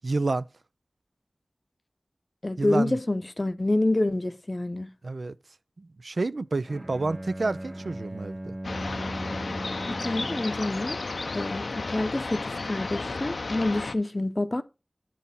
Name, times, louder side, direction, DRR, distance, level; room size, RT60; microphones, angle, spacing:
voice 1, 0.0-0.5 2.6-3.0 5.0-5.4 5.8-8.6, right 3 dB, 80° right, 0.4 m, -29 dB
voice 2, 2.4-4.9 9.9-11.0 11.3-14.6, left 2 dB, 40° left, 0.6 m, -27 dB
Bowed string instrument, 6.6-10.7, right 1 dB, 40° right, 0.7 m, -38 dB
sound 1, 8.6-13.9, left 3 dB, 85° left, 0.5 m, -33 dB
9.0 x 4.2 x 5.4 m
wide cardioid pair, 45°, 0 cm